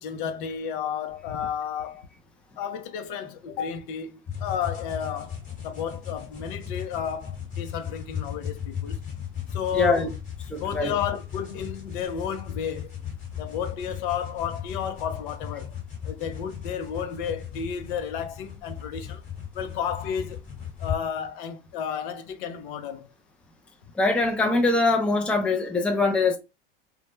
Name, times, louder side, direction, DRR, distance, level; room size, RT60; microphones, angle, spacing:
voice 1, 0.0-2.1 2.6-9.0 9.5-10.1 10.6-13.0 13.4-15.8 16.0-19.2 19.5-20.4 20.8-23.1, left 8 dB, 60° left, 0.6 m, -32 dB
sound 1, 4.3-21.0, left 8 dB, 25° left, 1.2 m, -36 dB
voice 2, 9.7-10.1 10.5-10.9 23.9-26.4, left 3 dB, 5° left, 0.4 m, -23 dB
2.1 x 2.0 x 3.0 m
hypercardioid pair, 95°, 29 cm